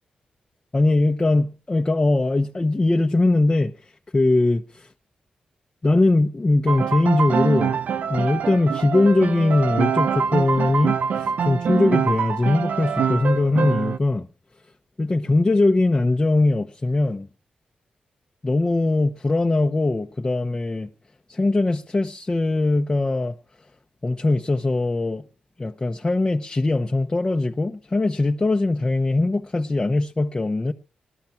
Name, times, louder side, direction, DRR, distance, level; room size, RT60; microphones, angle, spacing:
voice 1, 0.7-4.9 5.8-7.8 8.1-14.3 15.0-17.3 18.4-20.9 21.3-23.4 24.0-25.2 25.6-30.7, left 2 dB, 30° left, 1.1 m, -21 dB
Piano, 6.7-14.0, right 6 dB, 75° right, 0.7 m, -24 dB
19.0 x 12.5 x 5.9 m
cardioid pair, 60°, 3 cm